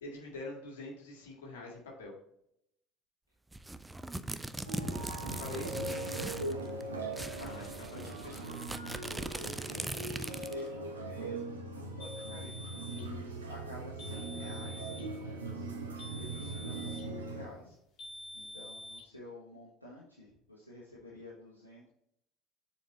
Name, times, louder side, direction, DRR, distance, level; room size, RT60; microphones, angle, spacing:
voice 1, 0.0-2.1 5.3-5.8 7.4-8.6, left 2 dB, 65° left, -1 dB, 2.1 m, -45 dB
sound 1, 3.5-6.5 6.8-6.9 7.1-10.7, right 2 dB, 10° right, 0.5 m, -40 dB
sound 2, 4.7-17.5, right 2 dB, 80° right, 1.1 m, -40 dB
voice 2, 5.3-5.6 6.4-6.7 7.3-7.6 9.0-15.7 16.1-17.8 18.3-21.9, left 1 dB, 85° left, -5 dB, 1.2 m, -51 dB
sound 3, 12.0-13.1 14.0-15.1 16.0-17.1 18.0-19.0, left 1 dB, 50° left, 2.3 m, -47 dB
7.1 x 4.4 x 4.3 m, 0.74 s
figure-of-eight pair, 65°, 0 cm